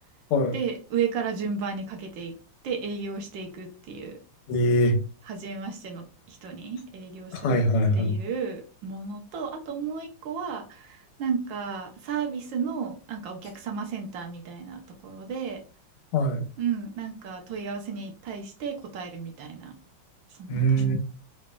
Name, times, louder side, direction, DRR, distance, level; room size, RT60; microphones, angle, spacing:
voice 1, 0.5-2.4 2.6-4.2 5.2-7.6 7.9-15.6 16.6-19.7 20.3-20.9, right 6 dB, 70° right, 3 dB, 1.3 m, -33 dB
voice 2, 4.5-5.0 7.3-8.1 16.1-16.4 20.5-21.0, equal, 90° left, 5 dB, 1.7 m, -22 dB
3.9 x 3.2 x 2.2 m, 0.34 s
omnidirectional pair, 2.3 m